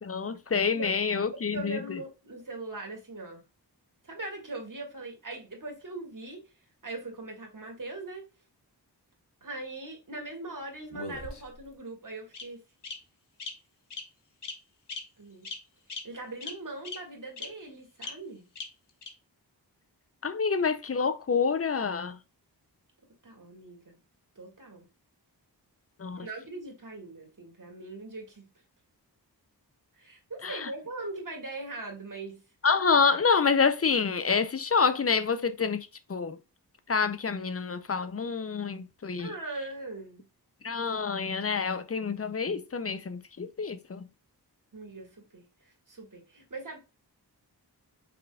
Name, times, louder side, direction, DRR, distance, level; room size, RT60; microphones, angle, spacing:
voice 1, 0.0-2.0 20.2-22.2 26.0-26.3 30.4-30.7 32.6-36.4 36.9-39.3 40.6-44.1, left 5 dB, 35° left, 0.5 m, -27 dB
voice 2, 1.5-3.4 4.0-6.4 6.8-8.2 9.4-12.6 15.2-15.5 16.0-18.4 23.2-24.0 24.4-24.9 26.2-28.4 30.0-32.4 39.2-40.2 44.7-45.4 45.9-46.8, right 2 dB, 50° right, 1.8 m, -40 dB
Bird vocalization bird call bird song, 10.9-11.7 12.3-12.4 12.8-12.9 13.4-13.5 13.9-14.0 14.4-14.6 14.9-15.0 15.4-15.6 15.9-16.0 16.4-16.5 16.8-17.0 17.4-17.5 18.0-18.1 18.6-18.7 19.0-19.1, left 3 dB, 85° left, 1.0 m, -38 dB
5.5 x 3.8 x 2.3 m
wide cardioid pair, 70°, 41 cm